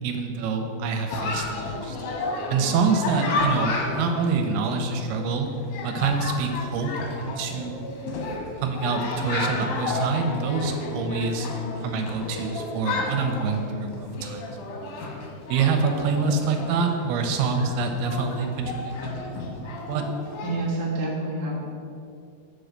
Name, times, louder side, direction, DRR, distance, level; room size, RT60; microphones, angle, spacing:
voice 1, 0.0-2.0 2.5-5.5 5.8-6.9 7.2-7.9 8.6-11.5 11.8-14.6 15.5-20.1, right 4 dB, 90° right, 5 dB, 2.7 m, -26 dB
Chatter, 1.1-20.7, left 3 dB, 70° left, 2.1 m, -32 dB
voice 2, 20.4-21.6, right 2 dB, 60° right, -5 dB, 1.0 m, -28 dB
6.1 x 4.6 x 6.6 m, 2.4 s
omnidirectional pair, 4.4 m